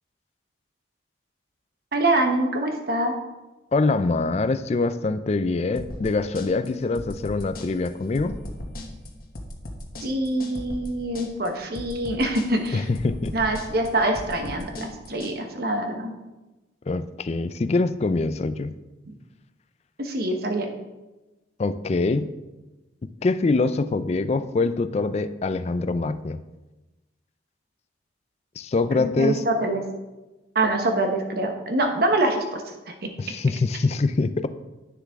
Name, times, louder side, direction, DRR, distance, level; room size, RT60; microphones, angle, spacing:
voice 1, 1.9-3.1 10.0-12.9 13.3-16.1 20.0-20.7 28.9-29.8 30.5-33.1, right 1 dB, 55° right, 4 dB, 1.0 m, -25 dB
voice 2, 3.7-8.4 12.7-13.3 16.9-18.8 21.6-22.3 23.0-26.4 28.6-29.4 33.2-34.5, left 3 dB, 35° left, 12 dB, 0.3 m, -24 dB
sound 1, 5.8-15.3, left 1 dB, 50° left, 1.0 m, -37 dB
9.6 x 6.6 x 3.6 m, 1.1 s
head